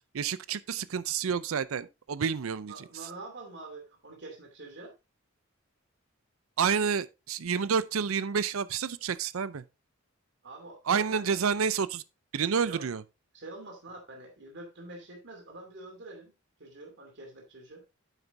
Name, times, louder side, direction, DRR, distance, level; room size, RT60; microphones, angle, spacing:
voice 1, 0.1-2.7 6.6-9.6 10.9-12.0 12.3-13.0, right 6 dB, 75° right, 0.5 m, -29 dB
voice 2, 2.7-4.9 10.4-11.4 12.7-12.8 13.3-16.3 16.6-17.8, right 2 dB, 60° right, 2.8 m, -46 dB
9.2 x 8.0 x 2.7 m
head